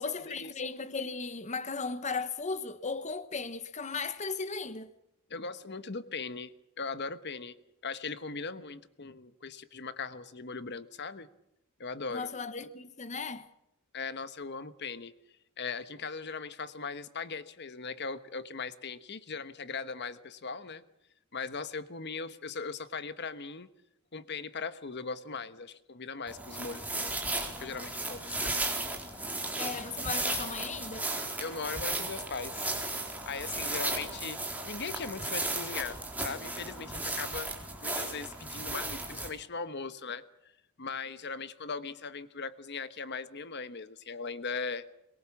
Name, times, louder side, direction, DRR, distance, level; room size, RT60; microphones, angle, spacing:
voice 1, 0.0-4.9 12.1-13.5 29.6-31.1, left 4 dB, 35° left, 1.0 m, -36 dB
voice 2, 5.3-7.6 7.8-11.3 11.8-12.3 13.9-15.1 15.6-20.8 21.3-23.7 24.1-27.2 27.6-28.6 31.4-32.7 32.9-37.5 37.8-40.5 40.8-44.9, left 4 dB, 55° left, 1.2 m, -39 dB
sound 1, 26.3-39.3, right 2 dB, 5° right, 4.2 m, -35 dB
23.0 x 22.5 x 7.3 m
head